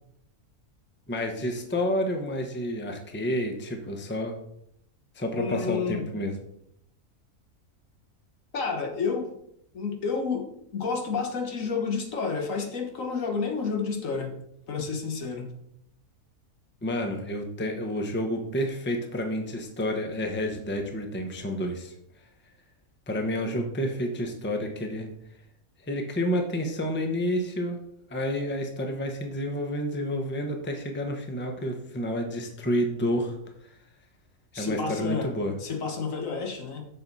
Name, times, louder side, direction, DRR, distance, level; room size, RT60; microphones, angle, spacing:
voice 1, 1.1-4.3 5.2-6.3 16.8-21.9 23.1-25.1 25.9-27.8 28.1-33.3 34.6-35.5, equal, 10° left, 3 dB, 0.8 m, -29 dB
voice 2, 5.3-6.1 8.5-9.3 9.7-14.4 14.7-15.5 34.5-35.3 35.6-36.9, left 5 dB, 65° left, 4 dB, 1.5 m, -30 dB
7.6 x 7.1 x 4.1 m, 0.74 s
omnidirectional pair, 1.5 m